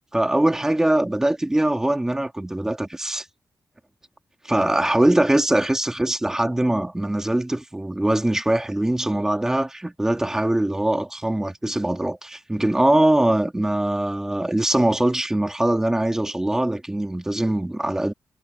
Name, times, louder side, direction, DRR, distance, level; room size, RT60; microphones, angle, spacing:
voice 1, 0.1-3.2 4.4-18.1, right 1 dB, 10° right, 2.5 m, -22 dB
wide cardioid pair, 165°, 6 cm